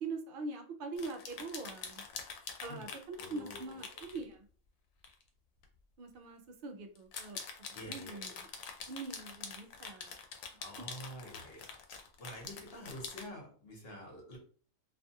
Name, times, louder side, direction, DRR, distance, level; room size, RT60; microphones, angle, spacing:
voice 1, 0.0-2.0 2.6-4.4 6.0-7.4 7.8-8.3 8.9-10.2, right 3 dB, 65° right, 4 dB, 0.5 m, -43 dB
sound 1, 1.0-4.2 5.0-5.2 5.6-5.7 7.0-13.3, left 6 dB, 85° left, 1.0 m, -45 dB
voice 2, 3.2-4.0 7.7-8.4 10.6-11.6 12.2-14.4, equal, 50° left, -1 dB, 1.0 m, -48 dB
2.5 x 2.3 x 2.6 m, 0.43 s
omnidirectional pair, 1.4 m